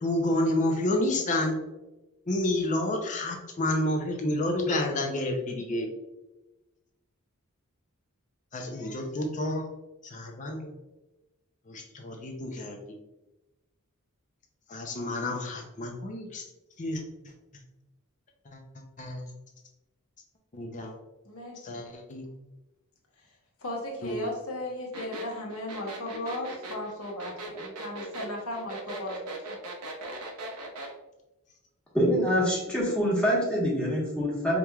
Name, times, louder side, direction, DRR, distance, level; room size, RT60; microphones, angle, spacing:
voice 1, 0.0-1.6 2.3-5.9 8.5-9.6 10.0-10.7 11.7-13.0 14.7-16.4 16.8-17.0 18.5-18.6 19.0-19.2 20.5-20.9 21.6-22.2 24.0-24.3, left 1 dB, 35° left, 2 dB, 0.5 m, -29 dB
voice 2, 21.2-21.6 23.6-29.6, left 1 dB, 70° left, -1 dB, 1.1 m, -36 dB
sound 1, 24.9-30.9, right 2 dB, 80° right, 0.8 m, -39 dB
voice 3, 31.9-34.6, equal, 5° left, -6 dB, 1.1 m, -25 dB
5.0 x 3.0 x 2.3 m, 1.0 s
head